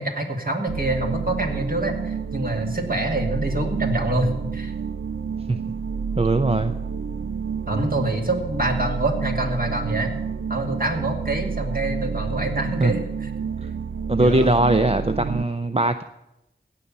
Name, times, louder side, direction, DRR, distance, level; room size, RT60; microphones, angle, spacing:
voice 1, 0.0-4.7 7.7-10.2 10.5-13.3 14.2-14.5, right 1 dB, 50° right, 2 dB, 2.3 m, -26 dB
sound 1, 0.7-15.4, right 6 dB, 80° right, 0.5 m, -29 dB
voice 2, 6.2-6.7 12.4-12.5 12.8-12.9 14.1-16.0, right 2 dB, 30° right, 9 dB, 0.6 m, -20 dB
16.5 x 5.6 x 8.8 m, 0.89 s
wide cardioid pair, 40°, 20 cm